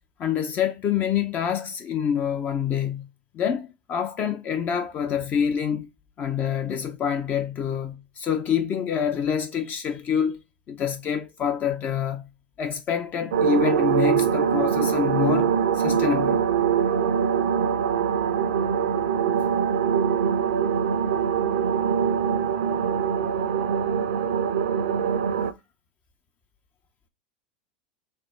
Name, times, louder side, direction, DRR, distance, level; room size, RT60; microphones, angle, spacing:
voice 1, 0.2-3.1 3.3-5.9 6.2-10.4 10.7-12.3 12.6-16.4, left 8 dB, 35° left, 0.5 m, -26 dB
sound 1, 13.3-25.5, right 7 dB, 85° right, 0.5 m, -23 dB
3.3 x 2.0 x 4.0 m
hypercardioid pair, 105°, 5 cm